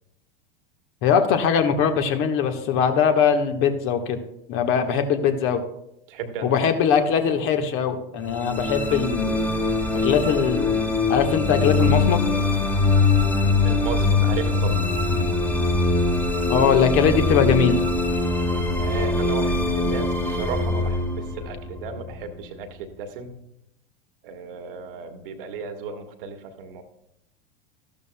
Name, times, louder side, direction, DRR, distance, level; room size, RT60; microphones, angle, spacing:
voice 1, 1.0-4.2 4.5-5.6 6.4-9.5 9.9-10.7 11.1-12.2 16.5-17.8, left 7 dB, 45° left, 6 dB, 1.3 m, -21 dB
voice 2, 6.1-6.6 13.6-14.8 18.8-23.3 24.2-26.8, right 5 dB, 65° right, 5 dB, 1.5 m, -34 dB
sound 1, 8.3-22.6, left 3 dB, 5° left, 1.5 m, -22 dB
13.5 x 12.0 x 2.2 m, 0.81 s
hypercardioid pair, 85°, 29 cm